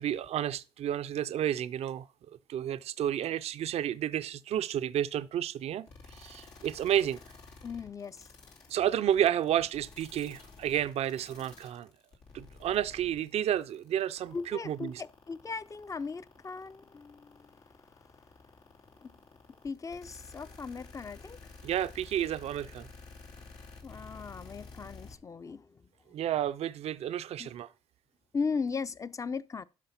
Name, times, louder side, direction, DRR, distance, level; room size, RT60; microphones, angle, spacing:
voice 1, 0.0-2.1 2.5-7.2 8.7-11.9 12.3-15.0 21.6-22.9 26.1-27.7, right 10 dB, 75° right, 0.5 m, -31 dB
sound 1, 5.9-25.2, left 4 dB, 85° left, 2.7 m, -51 dB
voice 2, 7.6-8.5 14.3-17.6 19.0-19.1 19.5-21.5 23.8-25.9 27.4-27.5 28.3-29.6, left 5 dB, 30° left, 0.6 m, -38 dB
12.5 x 4.9 x 5.8 m
cardioid pair, 90°, 11 cm